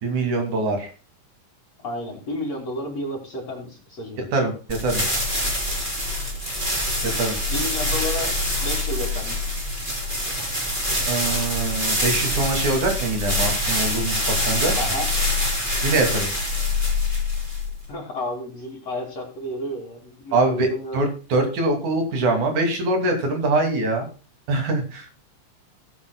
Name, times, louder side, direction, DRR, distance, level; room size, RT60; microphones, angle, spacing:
voice 1, 0.0-0.9 4.3-5.0 7.2-7.4 11.1-14.7 15.8-16.3 20.3-24.1 24.5-25.1, right 2 dB, 65° right, 4 dB, 3.9 m, -23 dB
voice 2, 1.8-4.2 7.5-8.3 8.6-9.6 14.8-15.1 17.9-21.1, left 1 dB, 50° left, -2 dB, 3.5 m, -31 dB
sound 1, 4.7-17.8, left 1 dB, 15° right, 4.2 m, -25 dB
18.0 x 8.3 x 2.2 m, 0.35 s
omnidirectional pair, 3.8 m